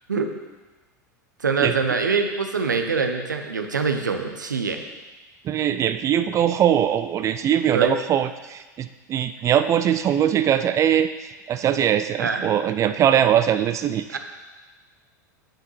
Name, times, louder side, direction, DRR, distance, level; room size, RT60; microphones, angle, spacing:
voice 1, 1.4-4.8 7.7-7.9 12.2-12.5 14.1-14.2, right 5 dB, 85° right, 6 dB, 0.7 m, -24 dB
voice 2, 5.4-11.1 11.5-14.2, right 10 dB, 30° right, 10 dB, 0.4 m, -21 dB
8.8 x 7.4 x 3.1 m, 1.2 s
hypercardioid pair, 85°, 10 cm